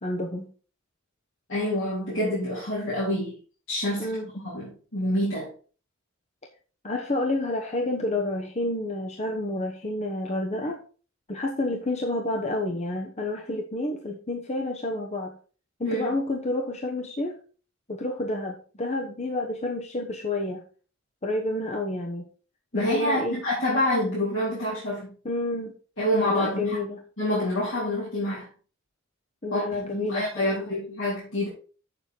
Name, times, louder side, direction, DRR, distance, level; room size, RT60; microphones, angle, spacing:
voice 1, 0.0-0.5 4.0-4.3 6.8-10.8 11.3-15.3 15.8-17.4 17.9-20.6 21.2-22.3 22.7-23.4 25.2-25.8 26.3-27.0 29.4-30.6, left 2 dB, 35° left, 1 dB, 1.1 m, -29 dB
voice 2, 1.5-3.4 3.7-5.5 15.8-16.2 22.7-25.1 26.0-26.8 27.2-28.5 29.5-31.5, left 1 dB, 65° left, -8 dB, 4.1 m, -27 dB
7.7 x 6.9 x 4.6 m, 0.38 s
head